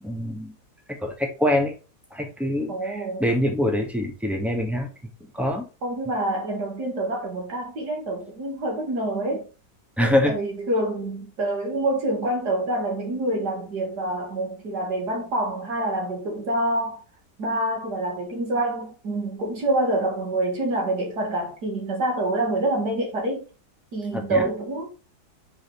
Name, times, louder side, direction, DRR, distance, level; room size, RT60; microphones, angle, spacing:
voice 1, 0.0-0.5 1.0-1.7 2.1-4.9 5.2-5.7 10.0-10.3 24.1-24.4, left 1 dB, ahead, 0.9 m, -24 dB
voice 2, 2.7-3.3 5.8-9.5 10.0-17.0 17.4-23.4 23.9-24.9, right 1 dB, 70° right, 2.5 m, -26 dB
5.0 x 4.7 x 4.2 m
omnidirectional pair, 1.8 m